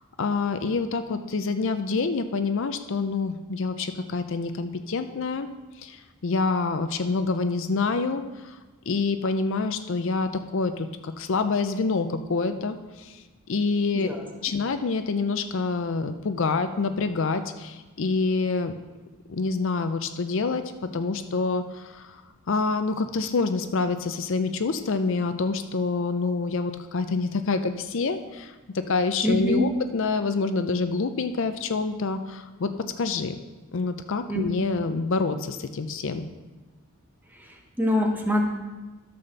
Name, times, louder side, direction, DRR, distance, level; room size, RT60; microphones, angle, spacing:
voice 1, 0.0-5.5 5.8-8.6 8.9-13.2 13.5-14.1 14.4-18.7 19.3-20.6 20.9-22.2 22.5-32.7 33.0-33.3 33.7-36.3, left 4 dB, 60° left, 9 dB, 0.5 m, -27 dB
voice 2, 29.2-29.7 34.3-34.4 37.3-38.5, left 1 dB, 10° right, 1 dB, 1.0 m, -25 dB
12.0 x 4.2 x 6.6 m, 1.2 s
head